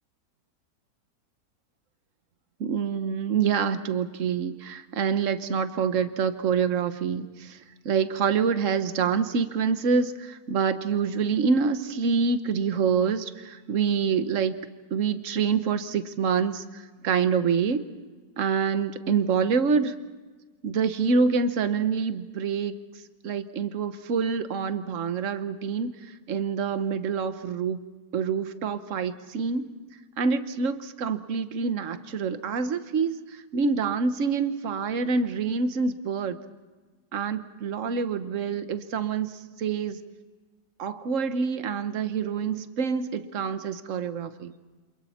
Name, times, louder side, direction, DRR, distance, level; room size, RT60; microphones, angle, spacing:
voice 1, 2.6-7.6 7.8-14.6 14.9-17.9 18.4-19.9 20.6-22.7 23.2-25.9 26.3-27.8 28.1-29.7 30.2-33.2 33.5-36.4 37.1-40.0 40.8-44.5, right 5 dB, 55° right, 10 dB, 1.4 m, -26 dB
29.0 x 27.0 x 4.3 m, 1.3 s
omnidirectional pair, 1.7 m